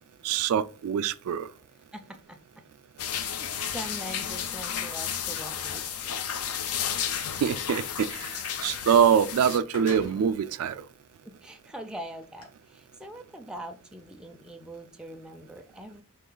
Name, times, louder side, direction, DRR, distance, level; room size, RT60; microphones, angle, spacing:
voice 1, 0.2-1.5 7.4-10.8, right 8 dB, 75° right, 0.3 m, -24 dB
voice 2, 1.9-2.6 3.1-6.2 11.2-16.0, right 1 dB, 5° right, 0.4 m, -43 dB
sound 1, 3.0-9.6, left 8 dB, 85° left, 0.5 m, -32 dB
sound 2, 5.9-6.1 9.0-9.1 9.4-10.5 11.2-11.3 12.2-12.4, left 1 dB, 70° left, 1.6 m, -45 dB
4.4 x 3.0 x 3.9 m
head